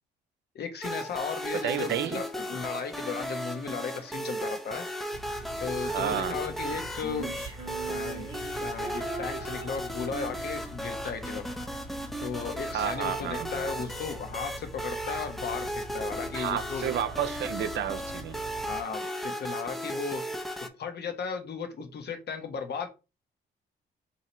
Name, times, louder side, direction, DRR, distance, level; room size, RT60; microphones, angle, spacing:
voice 1, 0.5-4.8 5.6-7.3 7.9-8.3 8.6-11.4 12.2-16.9 18.7-20.2 20.8-22.9, left 6 dB, 55° left, 0.9 m, -35 dB
sound 1, 0.8-20.7, equal, ahead, 0.5 m, -36 dB
voice 2, 1.6-2.2 5.8-6.4 12.7-13.5 16.3-18.4, right 9 dB, 60° right, 0.5 m, -31 dB
sound 2, 5.1-18.8, equal, 85° left, 1.1 m, -45 dB
Female singing, 7.0-10.5, right 3 dB, 25° right, 1.0 m, -41 dB
2.8 x 2.8 x 4.2 m
cardioid pair, 90°, 20 cm